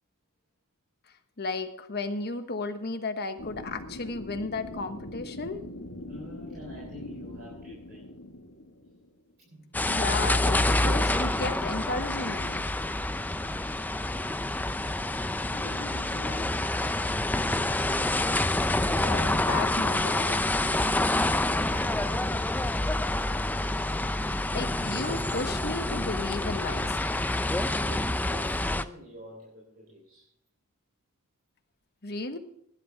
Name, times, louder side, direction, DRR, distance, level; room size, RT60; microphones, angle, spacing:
voice 1, 1.4-5.6 9.9-12.6 19.0-20.4 24.5-27.0 32.0-32.4, left 3 dB, 50° left, 8 dB, 1.3 m, -34 dB
sound 1, 3.4-9.3, left 1 dB, 70° left, 1.7 m, -42 dB
voice 2, 6.0-8.1 9.5-9.7 15.5-16.8 21.2-22.2 27.8-30.3, left 1 dB, 45° right, -3 dB, 3.6 m, -46 dB
sound 2, 9.7-28.8, left 1 dB, 10° left, 0.4 m, -27 dB
17.0 x 11.0 x 3.4 m, 0.73 s
head